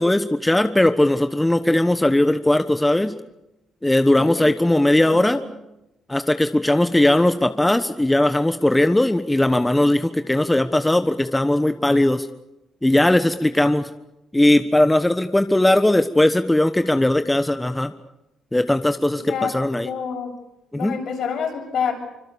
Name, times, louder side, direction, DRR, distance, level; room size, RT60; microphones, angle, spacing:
voice 1, 0.0-3.1 3.8-5.4 6.1-12.3 12.8-13.9 14.3-17.9 18.5-19.2 19.5-19.9 20.7-20.9, left 1 dB, 10° left, 9 dB, 1.3 m, -18 dB
voice 2, 4.1-4.5 5.0-5.4 19.1-20.3 20.7-21.9, left 6 dB, 65° left, 2 dB, 7.8 m, -28 dB
25.5 x 25.0 x 7.0 m, 0.91 s
cardioid pair, 90°, 0 cm